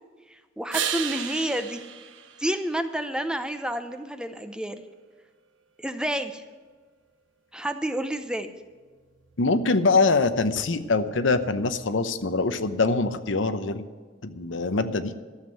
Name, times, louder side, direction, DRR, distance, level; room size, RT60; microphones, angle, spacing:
voice 1, 0.3-1.8 2.4-4.8 5.8-6.4 7.5-8.5, right 1 dB, 5° right, 9 dB, 0.7 m, -29 dB
sound 1, 0.7-3.3 9.0-13.0, right 8 dB, 85° right, 1.1 m, -37 dB
voice 2, 9.4-13.9 14.2-15.1, left 3 dB, 85° left, 11 dB, 0.8 m, -24 dB
13.0 x 7.4 x 8.9 m, 1.5 s
head